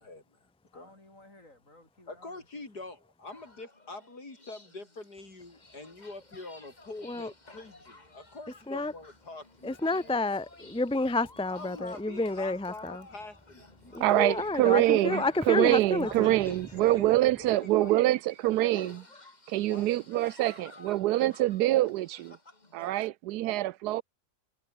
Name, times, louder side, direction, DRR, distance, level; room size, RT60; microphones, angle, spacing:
voice 1, 0.0-0.4 0.7-0.9 2.1-9.8 10.1-10.2 11.5-14.4 14.9-15.3 16.0-18.1 18.5-19.0 19.7-20.3, left 2 dB, 85° left, 6.0 m, -45 dB
voice 2, 0.7-2.9 9.8-10.4, left 2 dB, 55° left, 7.7 m, -56 dB
sound 1, 3.3-23.1, left 2 dB, 25° left, 2.7 m, -55 dB
voice 3, 9.6-13.1 13.9-16.3, left 2 dB, 5° left, 0.6 m, -30 dB
voice 4, 14.0-19.0 19.5-22.4 22.7-24.0, right 15 dB, 90° right, 1.2 m, -25 dB
omnidirectional pair, 1.7 m